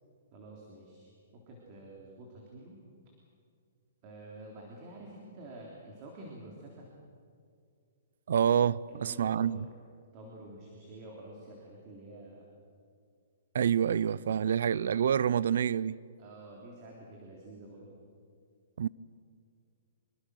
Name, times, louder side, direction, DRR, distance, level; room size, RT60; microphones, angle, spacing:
voice 1, 0.3-2.8 4.0-6.9 8.9-9.7 10.1-12.5 16.2-18.0, right 1 dB, 30° right, 3.5 m, -49 dB
voice 2, 8.3-9.6 13.5-16.0 18.8-18.9, right 8 dB, 70° right, 0.5 m, -27 dB
25.5 x 22.0 x 6.4 m
hypercardioid pair, 165°, 0 cm